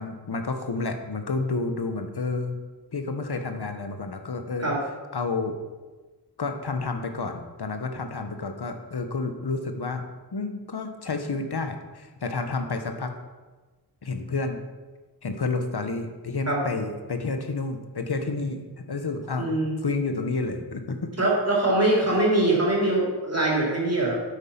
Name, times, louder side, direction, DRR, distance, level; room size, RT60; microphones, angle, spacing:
voice 1, 0.0-2.6 2.9-4.7 5.1-5.6 6.4-10.0 10.3-13.1 14.0-14.6 15.2-19.5 19.8-21.1 22.0-22.2, left 3 dB, 70° left, 6 dB, 1.1 m, -30 dB
voice 2, 19.4-19.7 21.2-24.1, right 2 dB, 35° right, -4 dB, 3.7 m, -23 dB
8.9 x 8.2 x 5.8 m, 1.3 s
wide cardioid pair, 80°, 41 cm